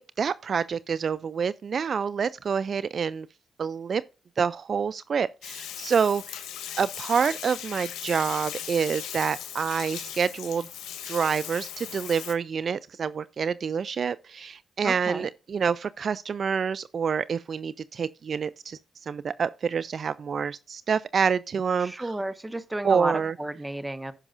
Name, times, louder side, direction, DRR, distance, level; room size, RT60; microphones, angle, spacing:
voice 1, 0.0-3.3 3.6-4.0 4.4-6.5 6.8-10.7 11.0-22.1 22.8-23.3, right 6 dB, 55° right, 0.4 m, -27 dB
Bathtub (filling or washing), 5.4-12.3, left 10 dB, 85° left, 1.4 m, -38 dB
voice 2, 14.8-15.3 21.8-24.1, right 1 dB, 15° right, 1.2 m, -32 dB
15.5 x 5.9 x 2.5 m
cardioid pair, 70°, 0 cm